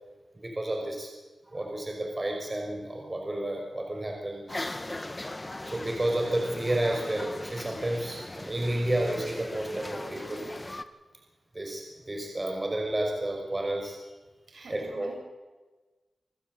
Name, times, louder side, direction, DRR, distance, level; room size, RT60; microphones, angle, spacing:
voice 1, 0.4-1.1 1.5-4.6 5.6-10.4 11.5-14.0 14.7-15.1, right 1 dB, 30° right, 2 dB, 5.6 m, -31 dB
sound 1, 4.5-10.8, left 1 dB, 25° left, 1.5 m, -39 dB
voice 2, 14.5-15.2, right 2 dB, 70° right, 1 dB, 7.8 m, -47 dB
27.0 x 15.0 x 8.1 m, 1.2 s
cardioid pair, 55°, 0 cm